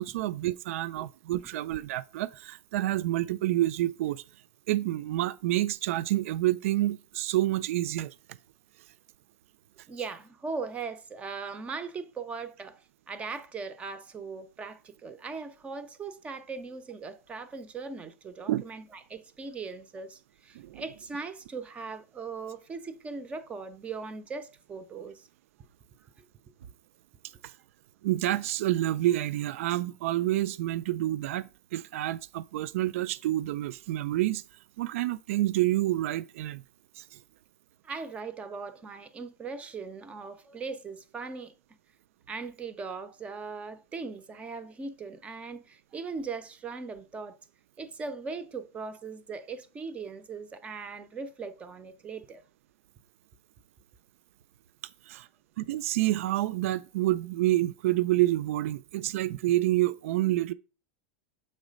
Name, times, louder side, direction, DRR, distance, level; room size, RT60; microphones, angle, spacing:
voice 1, 0.0-4.2 4.7-8.1 18.5-18.6 20.5-20.8 27.4-27.5 28.0-34.4 34.8-36.6 37.0-37.2 55.1-55.3 55.6-60.5, right 15 dB, 75° right, 0.3 m, -28 dB
voice 2, 9.9-25.3 26.2-26.3 37.8-41.5 42.3-47.4 47.8-52.4, right 4 dB, 15° right, 0.5 m, -39 dB
7.0 x 3.2 x 5.0 m
supercardioid pair, 155°, 7 cm